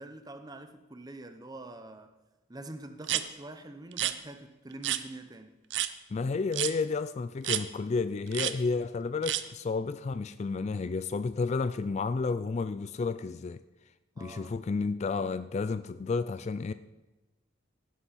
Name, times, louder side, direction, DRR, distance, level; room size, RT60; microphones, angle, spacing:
voice 1, 0.0-2.1 2.5-5.6 14.2-14.6, right 2 dB, 20° right, 0.8 m, -45 dB
sound 1, 3.0-3.2 3.9-4.1 4.8-5.0 5.7-5.9 6.5-6.7 7.4-7.6 8.3-8.5 9.2-9.4, right 12 dB, 60° right, 0.6 m, -29 dB
voice 2, 6.1-13.6 14.2-16.7, left 4 dB, 35° left, 0.3 m, -31 dB
16.5 x 10.0 x 4.2 m
head